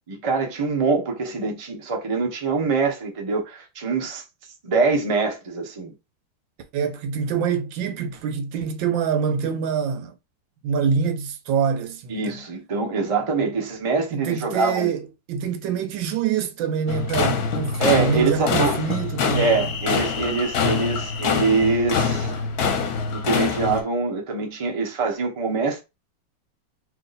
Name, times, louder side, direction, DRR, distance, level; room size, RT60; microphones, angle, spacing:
voice 1, 0.1-4.2 4.6-5.9 12.1-14.9 17.8-18.7 19.3-22.3 23.1-25.8, right 4 dB, 30° right, 0.6 m, -24 dB
voice 2, 6.7-10.1 10.6-12.4 14.1-19.7, right 6 dB, 75° right, 1.4 m, -25 dB
sound 1, 16.9-23.8, left 5 dB, 60° left, 1.1 m, -25 dB
3.0 x 2.9 x 3.9 m
omnidirectional pair, 2.1 m